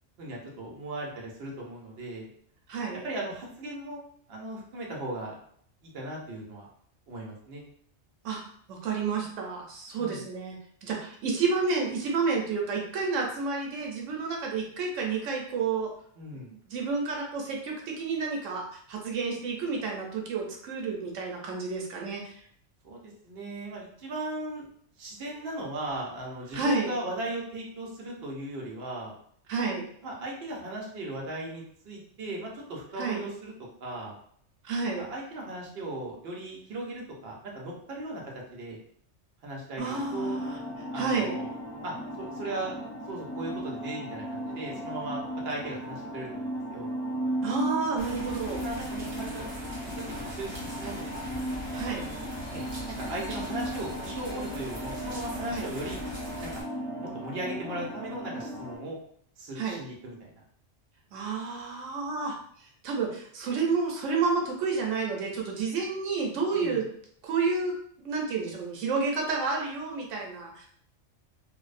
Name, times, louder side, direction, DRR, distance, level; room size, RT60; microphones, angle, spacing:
voice 1, 0.2-2.3 3.0-4.0 4.3-5.3 5.8-6.7 7.1-7.6 9.9-10.2 16.2-16.5 22.8-24.6 25.0-29.1 30.0-33.5 33.8-34.2 35.0-38.2 38.5-38.8 39.4-40.4 40.9-41.5 41.8-42.8 43.1-46.9 48.5-49.5 49.8-51.2 52.5-56.0 56.4-56.6 57.0-59.0 59.4-60.4 66.5-66.8, right 1 dB, 60° right, -2 dB, 0.9 m, -37 dB
voice 2, 2.7-3.0 8.2-8.4 8.7-10.6 10.8-15.9 16.7-22.3 26.5-26.9 29.5-29.9 33.0-33.2 34.6-35.0 39.8-40.6 40.9-41.3 47.4-48.6 51.7-52.0 55.5-55.7 59.6-59.8 61.1-62.3 62.6-66.9 67.2-67.7 68.0-70.7, right 4 dB, 90° right, 0 dB, 0.9 m, -30 dB
sound 1, 39.8-58.8, equal, 15° left, 0.6 m, -36 dB
sound 2, 48.0-56.6, equal, 30° right, 0.6 m, -41 dB
2.6 x 2.0 x 2.4 m, 0.63 s
omnidirectional pair, 1.2 m